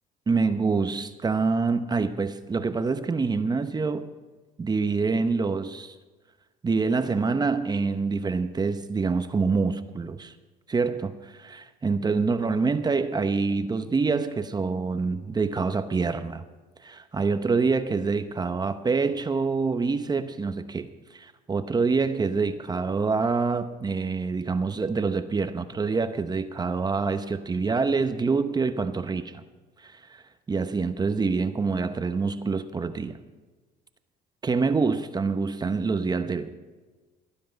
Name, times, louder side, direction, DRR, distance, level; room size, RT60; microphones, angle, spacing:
voice 1, 0.3-4.1 4.6-5.9 6.6-10.3 10.7-16.4 16.8-29.4 29.8-33.2 34.4-36.6, right 4 dB, 25° right, 10 dB, 0.9 m, -26 dB
18.5 x 10.0 x 5.2 m, 1.3 s
cardioid pair, 110°, 17 cm